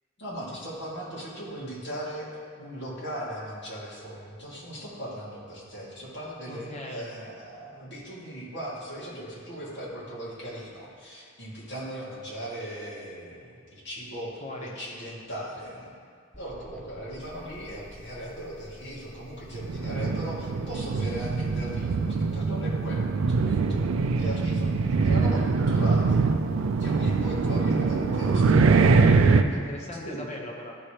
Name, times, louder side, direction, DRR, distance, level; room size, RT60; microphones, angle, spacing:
voice 1, 0.2-2.3 2.6-15.9 16.4-23.9 24.2-26.2 26.8-28.7 29.1-29.6 30.0-30.2, equal, 55° left, -7 dB, 2.0 m, -38 dB
voice 2, 6.5-7.1 14.4-14.7 24.8-25.1 29.5-30.7, left 1 dB, 30° left, -2 dB, 1.0 m, -39 dB
sound 1, 16.3-22.3, left 1 dB, 5° left, 0.4 m, -49 dB
sound 2, 19.5-29.4, right 4 dB, 70° right, 0.4 m, -23 dB
12.0 x 4.8 x 2.9 m, 2.1 s
head